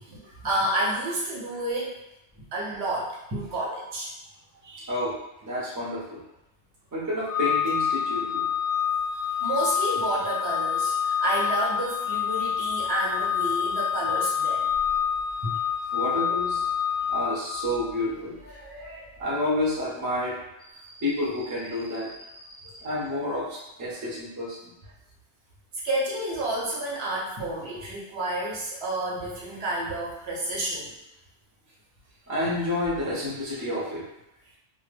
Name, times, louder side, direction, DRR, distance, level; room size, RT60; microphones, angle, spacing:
voice 1, 0.0-1.9 2.5-4.1 4.6-4.9 9.4-14.7 25.8-30.9, right 1 dB, 65° right, -4 dB, 0.8 m, -30 dB
voice 2, 5.4-6.2 6.9-8.4 15.4-15.6 15.9-16.6 17.1-20.4 20.6-24.7 32.3-34.0, left 1 dB, 20° right, -6 dB, 0.5 m, -30 dB
Organ, 7.3-18.0, left 8 dB, 40° left, 0.7 m, -27 dB
2.1 x 2.0 x 3.3 m, 0.88 s
omnidirectional pair, 1.2 m